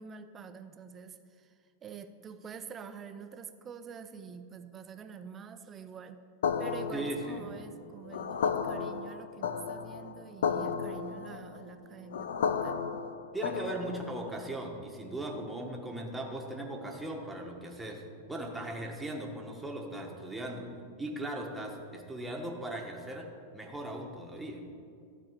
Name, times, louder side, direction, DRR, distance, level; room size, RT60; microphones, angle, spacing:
voice 1, 0.0-1.5 1.8-6.2 6.6-12.8, right 6 dB, 25° right, 9 dB, 0.6 m, -46 dB
sound 1, 6.4-14.2, left 6 dB, 85° left, 0.5 m, -34 dB
voice 2, 6.9-7.5 13.3-20.7 21.0-24.6, right 1 dB, 5° right, 0 dB, 1.3 m, -38 dB
13.0 x 4.3 x 8.1 m, 2.3 s
supercardioid pair, 135°, 0 cm